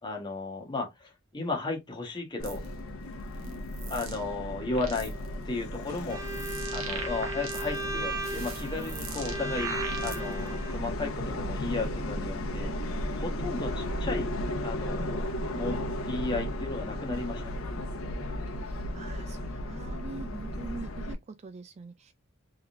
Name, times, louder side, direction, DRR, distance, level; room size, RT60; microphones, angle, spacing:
voice 1, 0.0-2.6 3.9-5.1 5.4-6.2 6.7-12.7 13.1-14.3 14.6-15.3 15.5-15.8 16.1-17.5, left 3 dB, 20° left, 1.4 m, -34 dB
Subway metro underground, 2.4-21.1, left 1 dB, 80° left, 1.1 m, -35 dB
sound 1, 2.4-2.7 3.3-4.2 4.6-5.3 5.8-7.9 8.2-10.5, right 5 dB, 80° right, 1.3 m, -41 dB
Bowed string instrument, 6.1-10.8, right 2 dB, 15° right, 1.0 m, -36 dB
voice 2, 18.9-22.1, right 4 dB, 30° right, 0.3 m, -43 dB
3.8 x 3.6 x 2.6 m
head